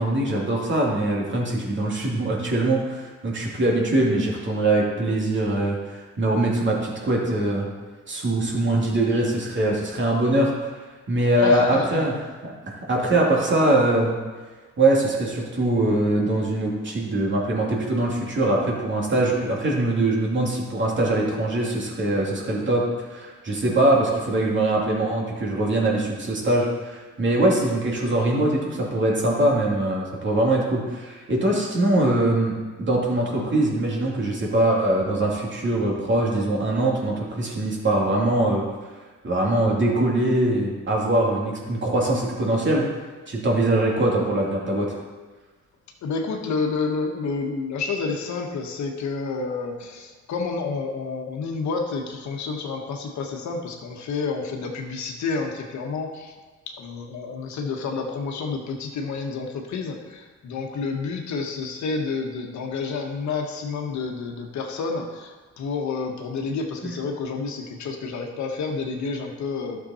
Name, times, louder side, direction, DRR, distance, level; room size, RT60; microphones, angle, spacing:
voice 1, 0.0-5.8 6.2-7.7 8.1-10.7 11.1-12.1 12.4-12.5 12.9-14.2 14.8-22.8 23.1-32.5 32.8-38.6 39.2-42.9 43.3-44.9 66.8-66.9, right 1 dB, 40° right, -2 dB, 2.7 m, -22 dB
voice 2, 11.4-12.1 46.0-56.3 56.7-69.9, left 4 dB, 70° left, 3 dB, 1.4 m, -29 dB
12.0 x 6.8 x 4.3 m, 1.4 s
cardioid pair, 90°, 30 cm